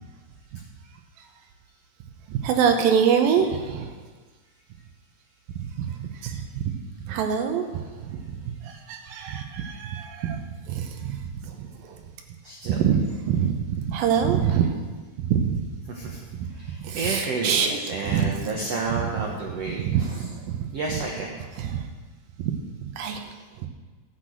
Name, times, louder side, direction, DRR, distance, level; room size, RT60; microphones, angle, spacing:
voice 1, 2.3-3.9 5.8-6.6 7.1-7.7 8.0-10.4 10.7-11.2 11.6-12.0 12.7-14.7 15.2-15.7 16.8-17.7 18.0-18.3 19.8-20.6 21.6-21.8 22.4-22.5 22.8-23.2, right 7 dB, 70° right, 5 dB, 2.5 m, -25 dB
voice 2, 12.4-12.8 15.9-20.3 20.7-21.4, right 3 dB, 90° right, -1 dB, 1.4 m, -31 dB
12.5 x 6.0 x 7.7 m, 1.4 s
omnidirectional pair, 4.7 m